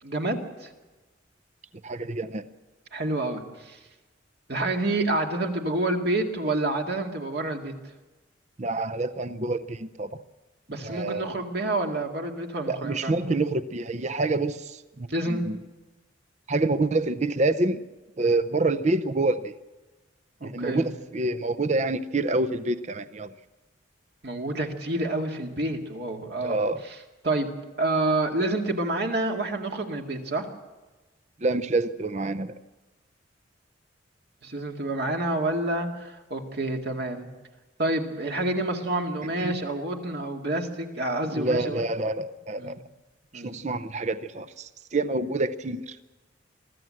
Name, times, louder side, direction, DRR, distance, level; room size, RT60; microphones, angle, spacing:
voice 1, 0.0-0.7 2.9-3.8 4.5-7.7 10.7-13.1 15.1-15.4 20.4-20.9 24.2-26.6 26.9-27.0 27.2-27.5 27.8-30.5 34.4-37.3 37.8-41.8 42.6-42.8 43.3-43.6, right 2 dB, 55° right, 3 dB, 2.2 m, -28 dB
voice 2, 1.8-2.5 8.6-10.2 10.8-11.3 12.7-15.6 16.5-17.8 18.2-19.5 20.4-23.3 26.4-26.8 31.4-32.5 39.4-39.5 41.3-42.8 43.3-46.0, right 2 dB, 35° right, 13 dB, 0.6 m, -27 dB
23.5 x 14.0 x 7.7 m, 1.1 s
head